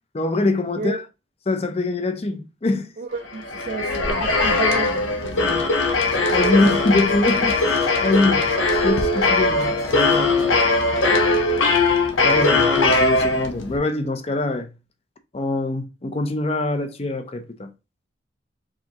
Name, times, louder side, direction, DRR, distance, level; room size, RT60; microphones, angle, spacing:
voice 1, 0.1-1.0 1.5-2.9 5.4-5.7 6.0-8.4 8.8-10.5 11.1-11.4 12.2-14.7 15.3-17.7, left 2 dB, 30° left, 0.5 m, -24 dB
voice 2, 3.0-5.5 6.0-6.1, right 3 dB, 45° right, 0.4 m, -32 dB
sound 1, 3.3-13.8, left 3 dB, 85° left, 0.9 m, -20 dB
sound 2, 6.1-10.6, left 3 dB, 60° left, 1.1 m, -36 dB
4.9 x 3.5 x 2.8 m
head